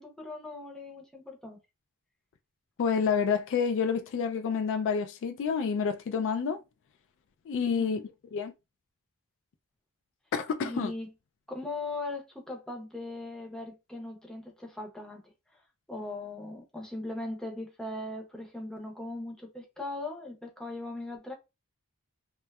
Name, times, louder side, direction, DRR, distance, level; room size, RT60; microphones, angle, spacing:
voice 1, 0.0-1.6 7.8-8.0 10.6-11.1 11.5-15.2 15.5-15.6 15.9-21.3, left 2 dB, 5° left, 0.6 m, -39 dB
voice 2, 2.8-6.6 7.5-8.0 8.3-8.5 10.3-10.9, left 6 dB, 55° left, 0.3 m, -28 dB
2.6 x 2.2 x 2.2 m
head